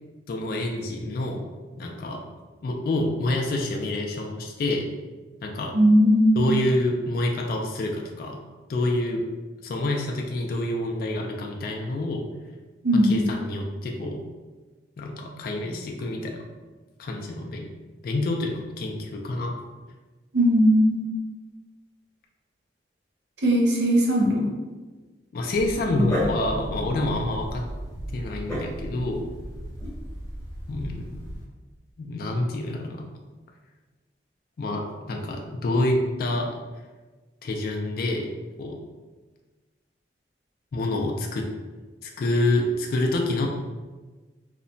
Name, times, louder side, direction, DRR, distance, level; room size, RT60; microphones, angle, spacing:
voice 1, 0.3-1.4 1.8-2.2 2.6-4.9 5.4-5.8 6.4-8.4 8.7-9.2 9.6-12.3 13.0-14.2 15.0-16.4 17.0-17.7 18.0-19.5 25.3-27.6 28.1-29.2 30.7-31.2 32.0-33.0 34.6-36.5 37.4-38.3 38.6-38.8 40.7-41.5 42.0-43.5, left 1 dB, 55° left, 1 dB, 0.3 m, -27 dB
voice 2, 5.7-6.5 12.8-13.1 20.3-21.2 23.4-24.4 25.9-26.0, equal, 65° right, -2 dB, 0.5 m, -19 dB
Dog, 25.5-31.4, equal, 15° left, 1.1 m, -34 dB
2.8 x 2.1 x 2.6 m, 1.3 s
head